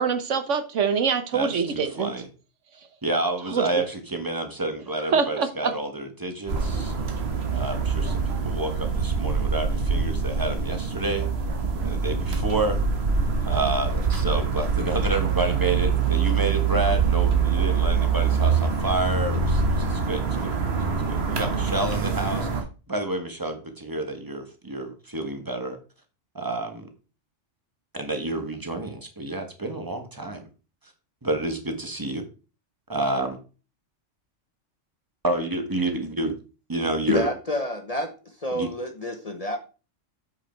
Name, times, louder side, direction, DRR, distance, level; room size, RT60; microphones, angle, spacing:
voice 1, 0.0-2.1 3.5-3.7 5.1-5.7, right 6 dB, 70° right, 1.3 m, -24 dB
voice 2, 1.3-2.3 3.0-6.9 7.5-11.3 11.8-12.8 13.4-20.6 21.1-22.5 22.9-25.8 26.3-26.9 27.9-30.4 31.2-32.2 32.9-33.4 35.2-36.3 36.7-37.3 38.5-38.7, right 2 dB, 15° right, 1.3 m, -29 dB
sound 1, 6.5-22.6, right 5 dB, 55° right, 1.6 m, -24 dB
voice 3, 37.1-38.1 38.4-39.6, left 1 dB, 30° left, 0.9 m, -28 dB
8.0 x 5.6 x 4.5 m
omnidirectional pair, 1.3 m